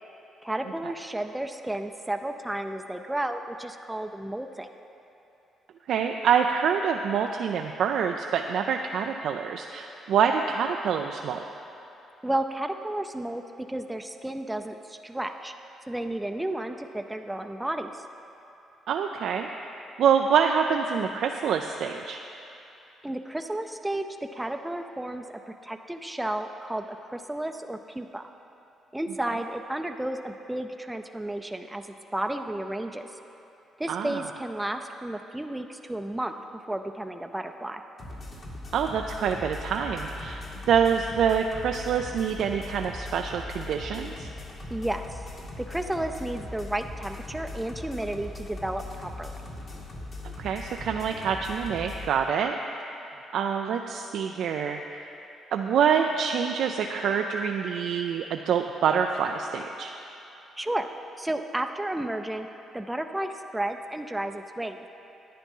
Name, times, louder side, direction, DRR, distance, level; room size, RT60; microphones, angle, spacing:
voice 1, 0.4-4.7 12.2-13.4 13.7-15.5 15.9-17.9 23.0-24.0 24.3-28.3 28.9-31.9 32.1-33.1 33.8-37.8 44.7-45.3 45.6-49.4 60.6-60.9 61.2-62.5 62.7-64.8, right 1 dB, 10° right, 6 dB, 0.5 m, -32 dB
voice 2, 5.9-11.4 18.9-19.7 20.0-22.2 33.9-34.3 38.7-44.3 50.4-52.6 53.3-55.0 55.5-59.9, right 7 dB, 75° right, 4 dB, 0.4 m, -26 dB
sound 1, 38.0-52.1, left 2 dB, 50° left, 1.9 m, -40 dB
10.0 x 9.0 x 5.5 m, 2.9 s
cardioid pair, 90°, 0 cm